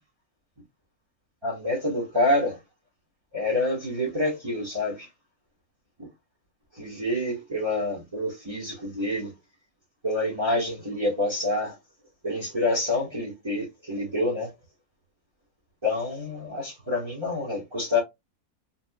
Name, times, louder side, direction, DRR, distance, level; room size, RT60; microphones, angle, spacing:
voice 1, 1.4-2.6 3.3-5.1 6.0-6.1 6.7-9.3 10.0-11.8 12.2-14.5 15.8-18.0, left 2 dB, 20° right, 1.2 m, -27 dB
3.7 x 2.7 x 2.2 m
omnidirectional pair, 1.6 m